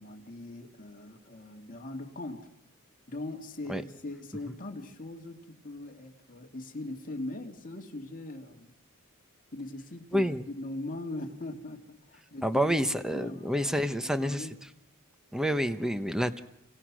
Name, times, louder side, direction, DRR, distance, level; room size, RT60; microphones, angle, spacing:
voice 1, 0.0-2.5 3.1-8.7 9.5-12.8 13.1-14.6, left 2 dB, 40° left, 3 dB, 2.6 m, -41 dB
voice 2, 10.1-10.5 12.4-14.5 15.3-16.4, equal, 5° right, 10 dB, 1.0 m, -28 dB
29.5 x 28.5 x 6.3 m, 0.85 s
head